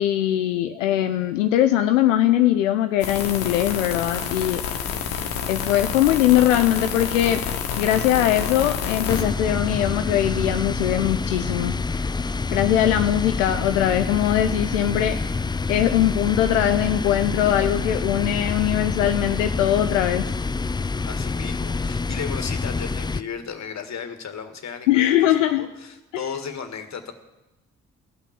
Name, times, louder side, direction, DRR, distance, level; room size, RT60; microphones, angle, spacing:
voice 1, 0.0-4.6 5.5-7.4 7.8-12.0 12.5-15.2 15.7-20.4 24.9-25.7 26.1-26.2, left 12 dB, 90° left, 9 dB, 0.5 m, -21 dB
sound 1, 3.0-9.2, left 7 dB, 70° left, 1.3 m, -28 dB
sound 2, 9.1-23.2, left 4 dB, 10° left, 0.4 m, -27 dB
voice 2, 21.1-27.1, left 6 dB, 45° left, 7 dB, 1.7 m, -35 dB
15.5 x 5.9 x 8.6 m, 1.0 s
hypercardioid pair, 45°, 37 cm